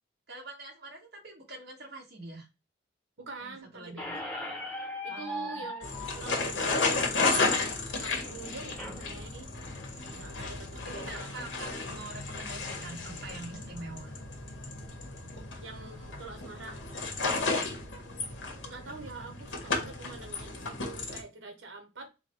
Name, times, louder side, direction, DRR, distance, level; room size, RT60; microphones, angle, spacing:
voice 1, 0.3-2.5 3.4-4.1 5.1-5.7 10.1-10.4 10.7-14.2 17.4-17.8, right 2 dB, 55° right, 1.7 m, -45 dB
voice 2, 3.2-4.6 5.0-7.0 8.0-9.5 10.1-11.5 15.6-16.8 18.6-22.1, right 3 dB, 85° right, 1.1 m, -45 dB
Squeak, 4.0-9.0, left 1 dB, 5° left, 0.9 m, -40 dB
sound 1, 5.8-21.2, left 3 dB, 80° left, 1.2 m, -33 dB
3.9 x 2.3 x 4.4 m
head